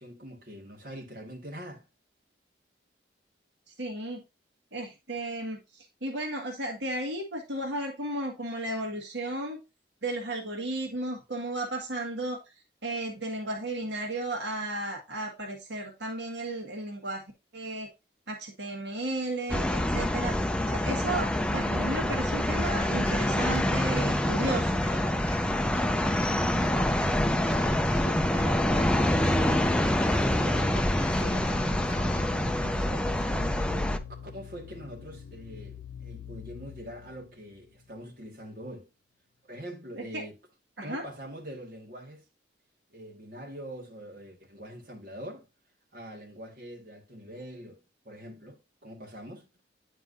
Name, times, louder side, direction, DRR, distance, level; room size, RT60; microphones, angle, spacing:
voice 1, 0.0-1.9 26.3-33.6 34.2-38.9 39.4-40.4 40.8-42.2 42.9-45.5 45.9-49.6, equal, 50° right, 1.8 m, -44 dB
voice 2, 3.7-4.2 4.7-9.6 10.0-12.4 12.8-17.2 17.5-17.9 18.3-20.3 20.7-24.8 39.9-40.2 40.8-41.0, right 1 dB, 70° right, 1.6 m, -34 dB
sound 1, 19.5-34.0, left 1 dB, 5° left, 0.5 m, -26 dB
Cheering, 22.1-23.6 23.9-25.4 25.7-27.1 27.5-28.9 29.2-30.6 31.0-32.4, right 1 dB, 15° right, 3.4 m, -47 dB
sound 2, 29.0-38.1, left 8 dB, 90° left, 0.4 m, -44 dB
9.4 x 4.7 x 2.6 m
head